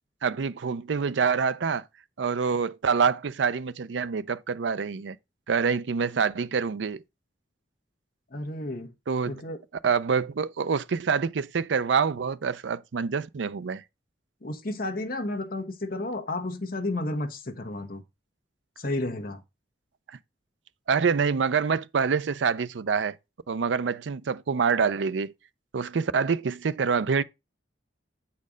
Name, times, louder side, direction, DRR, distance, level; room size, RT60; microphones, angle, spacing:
voice 1, 0.2-1.8 2.2-5.2 5.5-7.0 9.1-9.4 9.8-13.8 20.9-23.2 23.5-25.3 25.7-27.2, right 5 dB, 85° right, 0.5 m, -26 dB
voice 2, 8.3-8.9 9.3-9.6 14.4-18.0 18.8-19.4, left 2 dB, 55° left, 1.2 m, -32 dB
8.4 x 4.4 x 5.0 m
head